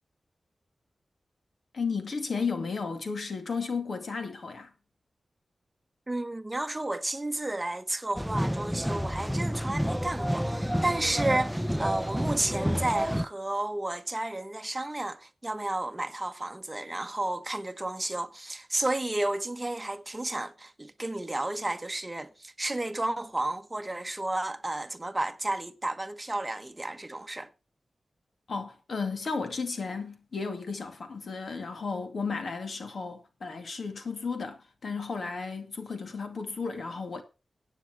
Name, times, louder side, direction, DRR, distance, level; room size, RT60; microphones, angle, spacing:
voice 1, 1.7-4.7 28.5-37.2, left 4 dB, 70° left, 2.3 m, -34 dB
voice 2, 6.1-27.5, right 2 dB, 20° right, 1.1 m, -32 dB
sound 1, 8.2-13.3, equal, ahead, 0.5 m, -29 dB
14.0 x 9.1 x 4.6 m
wide cardioid pair, 80°, 0 cm